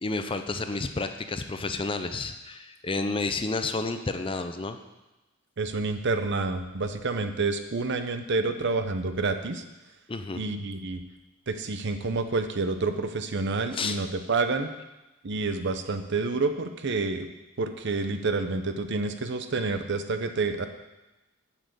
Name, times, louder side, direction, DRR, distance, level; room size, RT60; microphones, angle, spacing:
voice 1, 0.0-4.8 10.1-10.4 13.7-14.0, left 3 dB, 25° left, 8 dB, 0.6 m, -30 dB
voice 2, 5.6-9.6 10.4-11.0 11.5-14.7 15.2-17.3 17.6-20.7, right 3 dB, 60° right, 8 dB, 0.8 m, -28 dB
7.5 x 7.4 x 6.8 m, 1.0 s
head